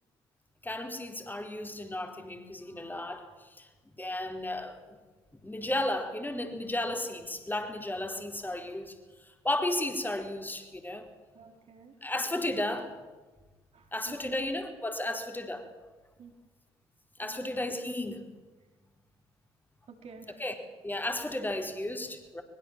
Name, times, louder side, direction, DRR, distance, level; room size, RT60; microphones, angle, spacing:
voice 1, 0.6-3.7 4.0-5.0 5.4-8.9 9.4-11.0 12.0-12.9 13.9-15.7 17.2-18.2 20.4-20.5 20.8-22.4, left 1 dB, 15° left, 4 dB, 4.4 m, -34 dB
voice 2, 11.3-11.9 13.7-14.4 16.2-16.3 17.2-17.5 19.9-20.4, right 5 dB, 50° right, 3 dB, 4.7 m, -50 dB
22.0 x 22.0 x 7.6 m, 1.3 s
hypercardioid pair, 45°, 14 cm